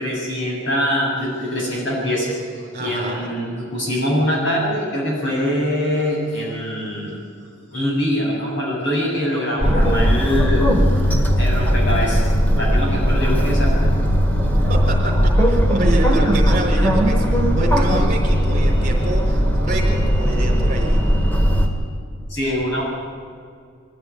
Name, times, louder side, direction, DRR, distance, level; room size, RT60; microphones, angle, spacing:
voice 1, 0.0-7.1 7.7-14.0 22.3-22.8, equal, 55° left, -3 dB, 7.4 m, -23 dB
voice 2, 2.7-3.3 14.7-21.0, right 2 dB, 40° right, -1 dB, 4.1 m, -28 dB
sound 1, 9.6-21.7, equal, 10° left, 2.1 m, -17 dB
22.5 x 15.0 x 9.8 m, 2.2 s
head